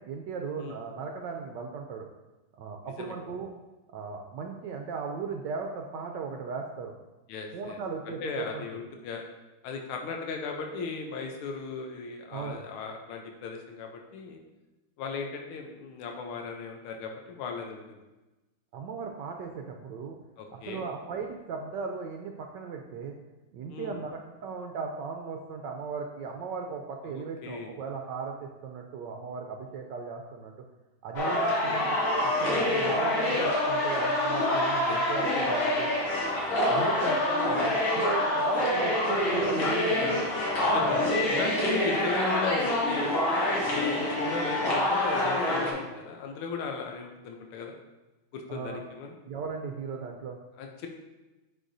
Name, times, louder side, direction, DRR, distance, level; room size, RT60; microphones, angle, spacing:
voice 1, 0.0-2.1 2.5-3.5 3.9-6.9 7.5-8.6 12.3-12.6 18.7-20.2 20.5-23.2 23.5-30.5 31.0-31.9 32.4-35.9 36.7-40.3 40.7-41.8 48.5-48.8 49.3-50.4, right 5 dB, 75° right, 3 dB, 1.1 m, -37 dB
voice 2, 2.8-3.1 7.3-7.8 8.0-9.2 9.6-14.4 15.0-18.0 20.4-20.9 23.7-24.0 27.0-27.7 31.6-31.8 34.8-35.0 37.4-37.7 40.6-41.0 41.4-43.2 43.6-47.7 48.3-49.2 50.6-50.9, left 5 dB, 90° left, 3 dB, 1.6 m, -37 dB
sound 1, 31.2-45.7, left 1 dB, 70° left, 2.3 m, -26 dB
9.9 x 4.7 x 2.6 m, 1.1 s
omnidirectional pair, 2.3 m